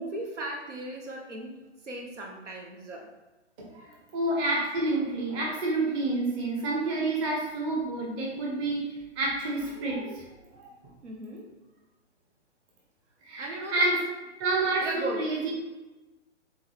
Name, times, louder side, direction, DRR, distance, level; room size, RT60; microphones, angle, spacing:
voice 1, 0.0-1.6 1.8-3.1 11.0-11.5 13.4-13.9 14.8-15.4, right 2 dB, 75° right, 0 dB, 1.0 m, -37 dB
voice 2, 3.6-8.9 9.2-10.3 10.5-10.7 13.2-14.0 14.4-15.5, right 2 dB, 25° right, -3 dB, 0.9 m, -29 dB
3.8 x 3.8 x 3.1 m, 1.1 s
figure-of-eight pair, 120°, 36 cm